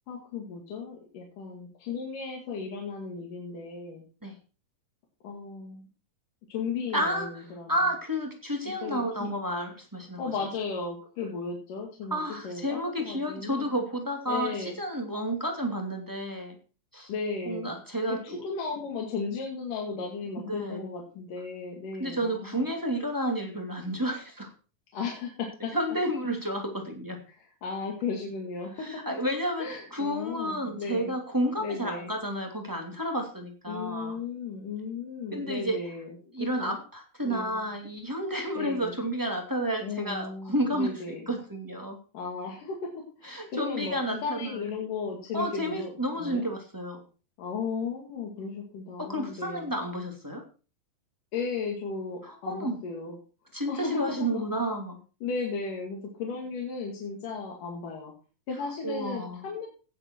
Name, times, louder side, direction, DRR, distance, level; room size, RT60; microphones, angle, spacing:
voice 1, 0.1-4.0 5.2-5.9 6.5-7.7 8.8-9.3 10.2-13.7 14.3-14.8 17.1-17.8 18.1-22.6 24.9-25.7 27.6-29.2 29.6-31.1 31.6-32.1 33.7-36.8 37.2-37.6 38.6-38.9 39.8-41.2 42.1-42.8 43.2-46.5 47.4-49.7 51.3-53.2 53.7-54.4 55.2-58.1 58.5-59.7, left 5 dB, 65° left, -1 dB, 3.7 m, -35 dB
voice 2, 6.9-7.3 7.7-10.3 12.1-16.6 16.9-17.1 17.5-18.4 20.5-20.8 22.0-24.5 25.7-27.2 28.8-34.2 35.3-35.8 36.3-42.0 43.2-44.7 45.3-47.0 49.0-50.4 52.2-52.8 53.5-55.0 58.8-59.4, equal, 5° right, 1 dB, 2.1 m, -31 dB
17.0 x 7.6 x 4.5 m, 0.36 s
omnidirectional pair, 4.0 m